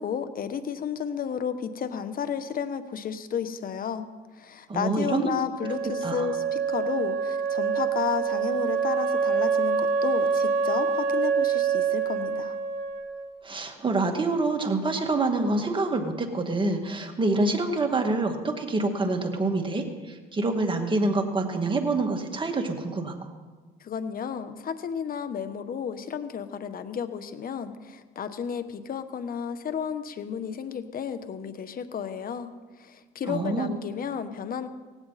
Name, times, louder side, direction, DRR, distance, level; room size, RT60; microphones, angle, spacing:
voice 1, 0.0-4.1 4.3-12.6 23.8-32.5 32.8-34.7, left 7 dB, 50° left, 11 dB, 1.2 m, -32 dB
voice 2, 4.7-5.4 6.0-6.3 13.4-23.3 33.3-33.7, right 2 dB, 25° right, 4 dB, 2.2 m, -26 dB
Wind instrument woodwind instrument, 5.6-13.3, right 6 dB, 60° right, 1.8 m, -26 dB
18.0 x 16.5 x 4.2 m, 1.4 s
cardioid pair, 90°, 19 cm